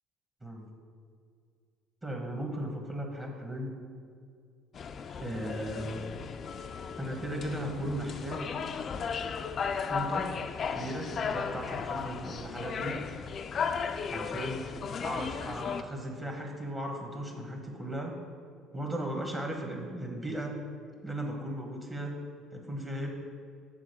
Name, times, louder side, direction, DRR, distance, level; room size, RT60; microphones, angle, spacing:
voice 1, 2.0-3.8 5.2-6.1 7.0-8.6 9.9-10.3 10.7-13.0 14.0-14.7 15.0-18.1 18.7-20.6 21.0-22.2 22.5-23.1, right 1 dB, 20° right, 1 dB, 1.2 m, -36 dB
sound 1, 4.7-15.8, left 6 dB, 45° left, 0.4 m, -35 dB
7.5 x 3.9 x 6.6 m, 2.2 s
supercardioid pair, 95°, 0 cm